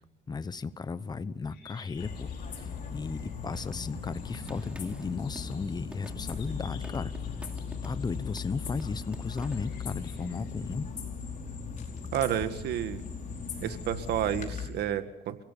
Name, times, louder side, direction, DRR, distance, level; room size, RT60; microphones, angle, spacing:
voice 1, 0.3-2.3 2.6-7.1 7.8-10.9, left 4 dB, 25° left, 14 dB, 1.0 m, -35 dB
sound 1, 1.5-10.6, left 7 dB, 75° left, 6.9 m, -57 dB
sound 2, 2.0-14.7, left 5 dB, 50° left, 5.3 m, -38 dB
sound 3, 3.5-5.5 5.9-8.1 8.4-9.7, right 1 dB, 5° right, 2.8 m, -50 dB
voice 2, 12.1-13.0 13.6-15.4, right 11 dB, 75° right, 10 dB, 1.9 m, -30 dB
29.0 x 17.0 x 7.0 m, 0.94 s
cardioid pair, 110°, 17 cm